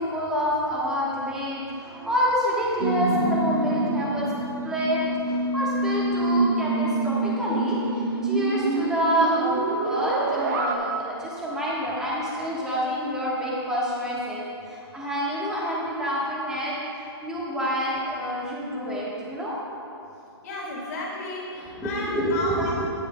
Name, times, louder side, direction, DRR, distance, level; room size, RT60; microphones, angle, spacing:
voice 1, 0.0-4.3 4.6-19.6 21.8-22.9, equal, 5° right, -6 dB, 1.2 m, -27 dB
sound 1, 2.8-10.7, right 2 dB, 40° right, 0.7 m, -26 dB
voice 2, 20.4-22.7, left 2 dB, 35° left, -5 dB, 2.0 m, -33 dB
14.0 x 10.0 x 2.2 m, 2.7 s
hypercardioid pair, 165°, 14 cm